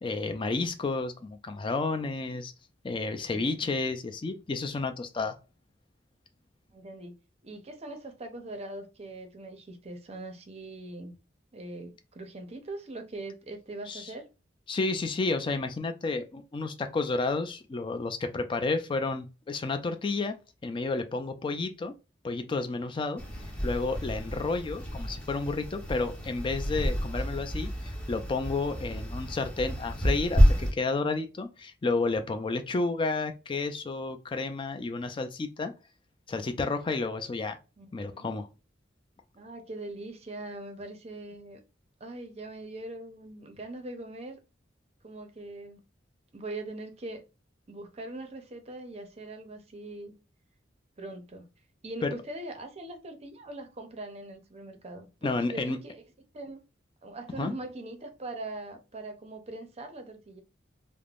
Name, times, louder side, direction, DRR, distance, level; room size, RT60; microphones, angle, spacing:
voice 1, 0.0-2.5 2.8-5.4 13.9-14.1 14.7-20.4 20.6-21.9 22.2-23.2 23.6-35.7 36.3-37.6 37.9-38.5 52.0-52.1 55.2-55.8 57.4-57.5, left 3 dB, 25° left, 0.4 m, -31 dB
voice 2, 3.3-3.8 6.7-7.2 7.4-11.1 11.5-14.3 37.8-38.4 39.3-41.6 42.0-44.4 45.0-45.8 46.3-47.2 47.7-50.1 51.0-51.5 51.8-56.0 56.3-56.6 57.0-60.4, right 2 dB, 35° right, 0.6 m, -41 dB
sound 1, 23.2-30.7, equal, 5° left, 0.7 m, -29 dB
3.4 x 2.0 x 2.3 m
head